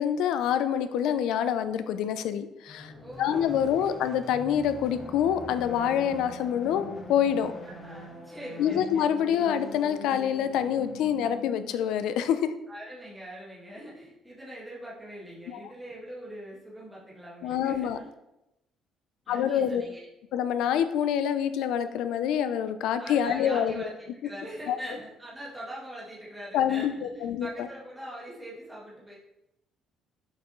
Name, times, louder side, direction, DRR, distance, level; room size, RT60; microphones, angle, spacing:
voice 1, 0.0-2.9 3.2-7.5 8.6-12.5 15.5-15.6 17.4-18.0 19.3-19.8 20.3-23.8 24.7-24.8 26.5-27.7, left 9 dB, 75° left, 11 dB, 0.5 m, -26 dB
sound 1, 2.7-11.9, left 2 dB, 25° left, 1.2 m, -43 dB
voice 2, 3.0-3.9 7.6-9.1 12.7-18.1 19.3-20.0 23.0-29.2, right 1 dB, 10° right, -6 dB, 1.7 m, -42 dB
6.6 x 5.8 x 3.1 m, 0.89 s
cardioid pair, 155°, 0 cm